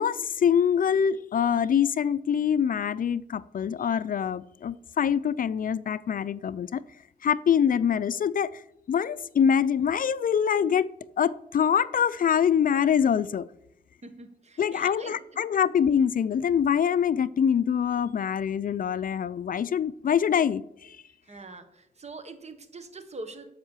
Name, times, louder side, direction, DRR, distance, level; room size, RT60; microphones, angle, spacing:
voice 1, 0.0-6.8 7.2-8.6 8.9-10.9 11.2-13.5 14.6-21.0, left 8 dB, 60° left, 17 dB, 0.4 m, -24 dB
voice 2, 14.0-15.2 21.2-23.5, right 3 dB, 40° right, 10 dB, 1.5 m, -43 dB
12.5 x 5.6 x 7.2 m, 0.80 s
cardioid pair, 90°, 16 cm